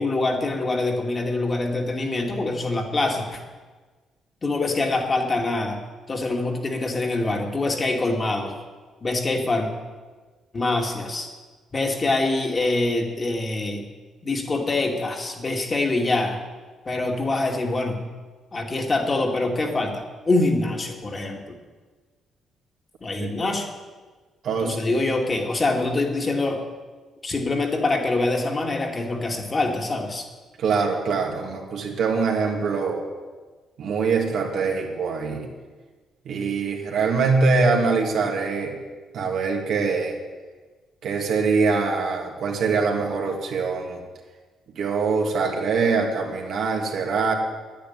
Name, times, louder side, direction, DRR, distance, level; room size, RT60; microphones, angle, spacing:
voice 1, 0.0-3.4 4.4-5.8 6.1-8.6 9.0-9.7 10.5-11.3 11.7-13.9 14.2-16.4 16.9-18.0 18.5-21.6 23.0-23.7 24.6-26.6 27.2-30.3, left 2 dB, 30° left, 2 dB, 2.5 m, -24 dB
voice 2, 24.4-24.8 30.6-33.0 33.8-35.5 36.2-38.8 39.1-40.2 41.0-44.0 44.7-47.3, right 4 dB, 70° right, 0 dB, 2.8 m, -23 dB
10.5 x 10.0 x 9.6 m, 1.4 s
cardioid pair, 90°, 0 cm